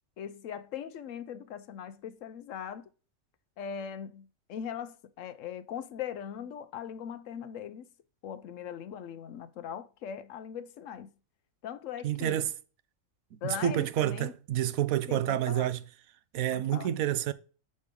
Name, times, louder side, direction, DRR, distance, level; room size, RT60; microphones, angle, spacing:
voice 1, 0.2-2.9 3.6-7.9 8.2-11.1 11.6-12.4 13.4-14.3 15.1-15.7 16.5-16.9, left 8 dB, 75° left, 1.0 m, -40 dB
voice 2, 12.0-12.5 13.4-15.8 16.3-17.3, right 12 dB, 90° right, 1.1 m, -29 dB
6.4 x 5.3 x 5.1 m
omnidirectional pair, 1.4 m